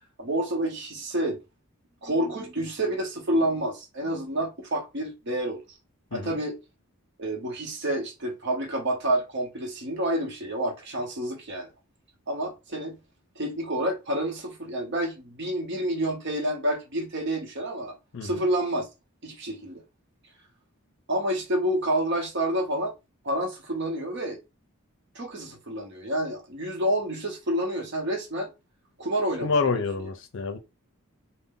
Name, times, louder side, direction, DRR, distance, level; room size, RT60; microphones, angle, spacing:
voice 1, 0.2-1.4 2.0-5.8 6.1-6.6 7.2-11.7 12.3-13.0 13.4-17.9 18.2-18.9 19.2-19.8 21.1-22.9 23.2-24.4 25.1-28.5 29.0-29.8, right 1 dB, 55° right, 0.8 m, -29 dB
voice 2, 29.4-30.6, left 4 dB, 60° left, 0.5 m, -27 dB
2.5 x 2.0 x 3.6 m
head